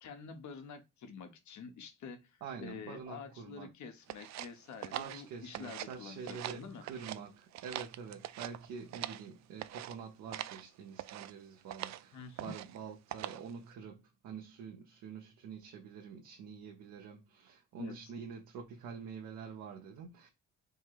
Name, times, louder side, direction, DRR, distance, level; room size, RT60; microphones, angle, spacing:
voice 1, 0.0-6.8 12.1-12.6 17.8-18.0, left 6 dB, 70° left, 1.2 m, -48 dB
voice 2, 2.4-3.7 4.9-20.3, right 6 dB, 85° right, 1.1 m, -46 dB
sound 1, 4.1-6.0 6.2-7.2 7.5-9.3 9.6-9.9 10.3-10.6 11.0-11.3 11.7-12.0 12.4-12.8 13.1-13.5, right 13 dB, 65° right, 0.5 m, -43 dB
5.3 x 2.0 x 4.6 m
cardioid pair, 90°, 30 cm